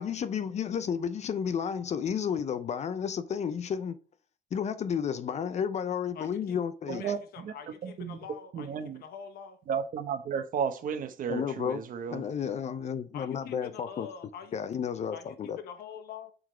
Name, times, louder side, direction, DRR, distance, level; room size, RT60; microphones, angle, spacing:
voice 1, 0.0-4.0 4.5-7.0 11.3-11.8 12.1-14.1 14.5-15.6, left 7 dB, 40° left, 0.6 m, -32 dB
voice 2, 6.1-6.6 6.9-9.6 13.1-14.6 15.1-16.3, left 7 dB, 65° left, 1.3 m, -45 dB
voice 3, 6.9-7.5 7.8-8.2 8.5-9.0 9.7-12.2, right 7 dB, 55° right, 1.1 m, -33 dB
7.7 x 3.9 x 4.4 m
cardioid pair, 110°, 17 cm